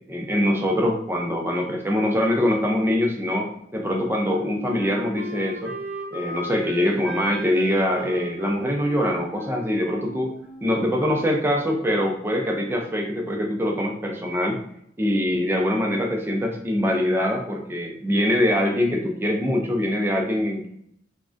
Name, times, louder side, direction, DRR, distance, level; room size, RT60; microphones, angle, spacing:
voice 1, 0.0-5.7 6.1-10.3 10.6-14.6 15.0-20.7, left 1 dB, 15° right, 1 dB, 0.4 m, -23 dB
Wind instrument woodwind instrument, 3.7-11.2, right 1 dB, 60° right, 0.6 m, -37 dB
3.4 x 2.1 x 2.5 m, 0.72 s
head